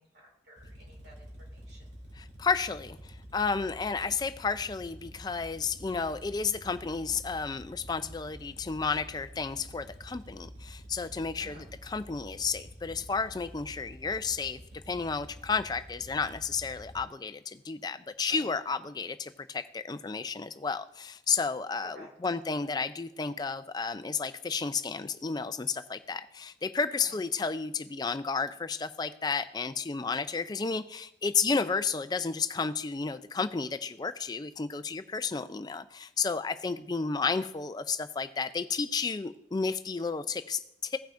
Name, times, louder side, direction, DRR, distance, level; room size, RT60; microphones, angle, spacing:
voice 1, 0.0-1.9 11.4-11.7 18.3-18.5 21.8-22.3 27.0-27.2, equal, 60° right, -2 dB, 2.9 m, -53 dB
sound 1, 0.6-17.0, equal, 90° right, 2.0 m, -49 dB
voice 2, 2.2-14.6 14.9-41.0, left 5 dB, 20° left, 11 dB, 0.3 m, -32 dB
17.0 x 5.7 x 2.5 m, 0.80 s
head